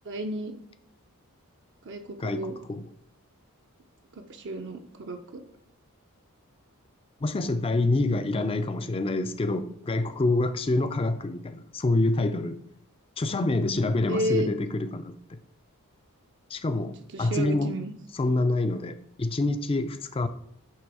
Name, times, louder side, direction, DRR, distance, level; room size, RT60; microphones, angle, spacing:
voice 1, 0.1-0.5 1.8-2.6 4.1-5.4 14.1-14.5 17.1-17.9, equal, 55° right, 4 dB, 0.6 m, -32 dB
voice 2, 2.2-2.8 7.2-12.6 13.2-15.4 16.5-17.7 18.1-20.3, left 2 dB, 25° left, 10 dB, 0.4 m, -27 dB
8.6 x 3.4 x 4.7 m, 0.75 s
head